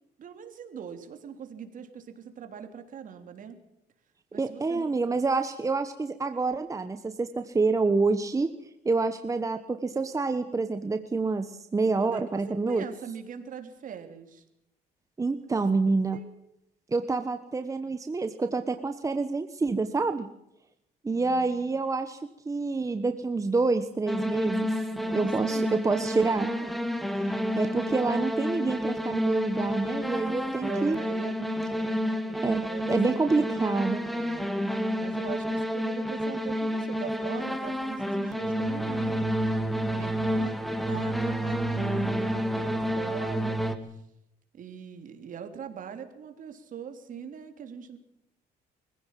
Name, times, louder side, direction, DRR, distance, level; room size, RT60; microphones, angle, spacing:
voice 1, 0.2-3.6 4.3-4.8 12.0-14.4 16.1-16.3 21.1-21.8 24.9-26.8 30.0-39.2 39.9-40.6 40.9-43.6 43.9-44.0 44.5-48.0, right 7 dB, 50° right, 6 dB, 3.4 m, -42 dB
voice 2, 4.4-8.5 8.8-12.8 15.2-16.2 16.9-20.3 21.0-22.2 22.4-24.7 25.1-26.5 27.2-31.0 32.4-34.0, right 3 dB, 20° right, 8 dB, 1.2 m, -27 dB
sound 1, 24.1-43.7, equal, ahead, 2.2 m, -29 dB
24.0 x 16.0 x 7.6 m, 0.82 s
cardioid pair, 110°, 17 cm